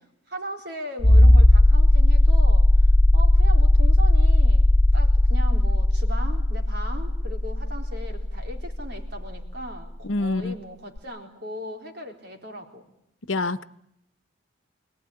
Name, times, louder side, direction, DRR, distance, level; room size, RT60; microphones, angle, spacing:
voice 1, 0.3-4.7 4.9-12.8, equal, 55° right, 3 dB, 3.9 m, -38 dB
sound 1, 1.0-9.5 11.0-11.1, left 1 dB, 50° left, 1.2 m, -17 dB
voice 2, 10.1-10.5 13.3-13.6, left 2 dB, 85° left, 13 dB, 1.1 m, -25 dB
27.5 x 18.5 x 9.9 m, 0.79 s
head